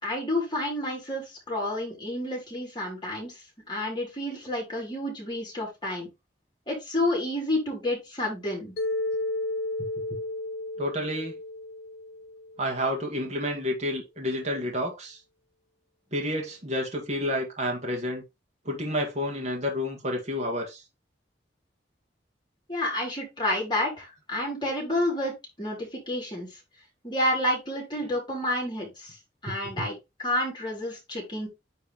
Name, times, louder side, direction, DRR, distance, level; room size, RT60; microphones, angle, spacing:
voice 1, 0.0-3.3 3.7-6.1 6.7-8.7 22.7-25.3 25.6-26.5 27.0-29.2 29.4-29.9 30.2-31.5, left 1 dB, 25° left, 3.9 m, -29 dB
Mallet percussion, 8.8-12.9, left 2 dB, 65° left, 1.0 m, -33 dB
voice 2, 10.8-11.4 12.6-15.2 16.1-18.2 18.7-20.8, equal, 40° right, 1.8 m, -30 dB
9.1 x 3.7 x 3.5 m
head